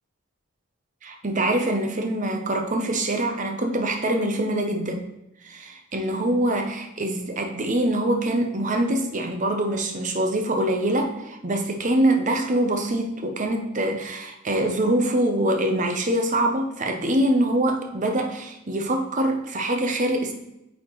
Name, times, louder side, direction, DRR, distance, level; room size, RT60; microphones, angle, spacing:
voice 1, 1.1-5.1 5.4-20.3, right 1 dB, 35° right, 4 dB, 0.7 m, -24 dB
8.6 x 4.2 x 3.0 m, 0.88 s
head